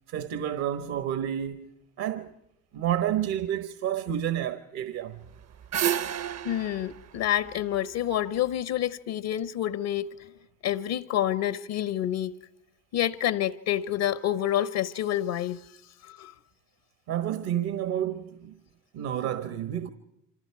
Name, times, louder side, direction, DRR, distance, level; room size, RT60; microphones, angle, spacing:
voice 1, 0.1-1.7 2.0-2.3 2.7-5.2 17.1-18.6 18.9-19.9, right 10 dB, 70° right, 1.4 m, -30 dB
sound 1, 5.2-8.4, right 10 dB, 45° right, 0.7 m, -31 dB
voice 2, 6.4-10.3 10.6-12.3 12.9-15.7 16.0-16.3, left 12 dB, 70° left, 1.0 m, -28 dB
28.0 x 25.0 x 4.8 m
supercardioid pair, 75°, 39 cm